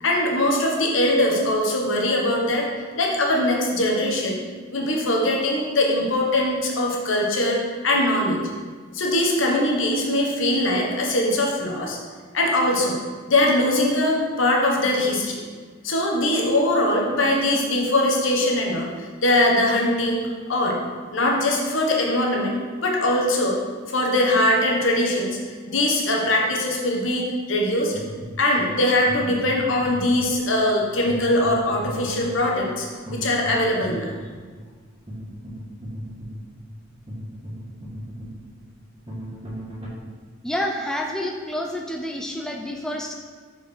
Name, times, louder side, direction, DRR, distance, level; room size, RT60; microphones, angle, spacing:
voice 1, 0.0-2.7 3.0-4.4 4.7-7.6 7.8-8.4 8.9-12.0 12.3-13.0 13.3-15.4 15.8-20.8 21.1-23.6 23.9-25.4 25.7-27.9 28.4-34.1, left 1 dB, 75° left, -1 dB, 1.2 m, -21 dB
sound 1, 27.9-39.9, equal, 30° right, 1.6 m, -37 dB
voice 2, 40.4-43.1, left 1 dB, 5° left, 1 dB, 0.4 m, -28 dB
6.5 x 4.7 x 4.5 m, 1.5 s
head